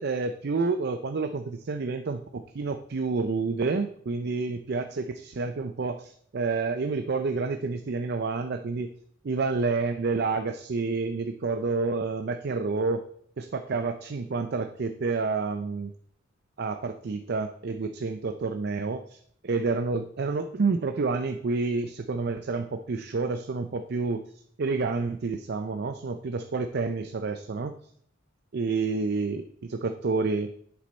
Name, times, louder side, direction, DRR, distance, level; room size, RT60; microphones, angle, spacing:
voice 1, 0.0-8.9 9.2-13.0 13.4-15.9 16.6-24.2 24.6-27.8 28.5-30.5, right 4 dB, 50° right, 8 dB, 0.5 m, -29 dB
8.0 x 6.8 x 4.2 m, 0.63 s
head